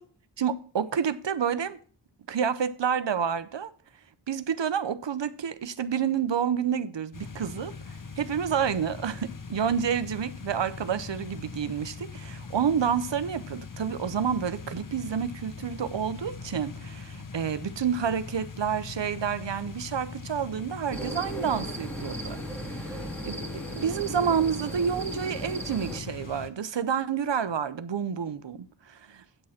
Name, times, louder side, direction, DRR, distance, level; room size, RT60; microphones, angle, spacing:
voice 1, 0.4-1.8 2.3-3.7 4.3-22.4 22.6-29.2, right 7 dB, 70° right, 0.7 m, -29 dB
sound 1, 7.1-26.5, left 4 dB, 45° left, 0.9 m, -41 dB
sound 2, 20.9-26.0, right 1 dB, 5° left, 1.9 m, -36 dB
8.9 x 6.5 x 5.7 m
wide cardioid pair, 65°, 45 cm